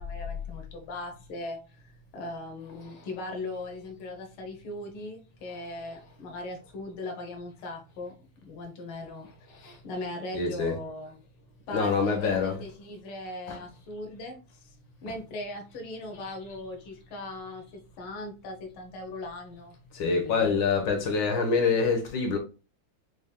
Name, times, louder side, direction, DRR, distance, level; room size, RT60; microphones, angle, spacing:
voice 1, 0.0-1.6 2.1-8.1 8.4-9.3 9.8-11.2 11.7-14.8 15.0-20.6, left 2 dB, 80° left, 1.8 m, -39 dB
voice 2, 10.3-10.8 11.7-12.6 13.5-13.6 15.1-15.2 19.9-22.4, left 5 dB, 65° left, 1.8 m, -26 dB
6.1 x 3.6 x 2.2 m
omnidirectional pair, 2.2 m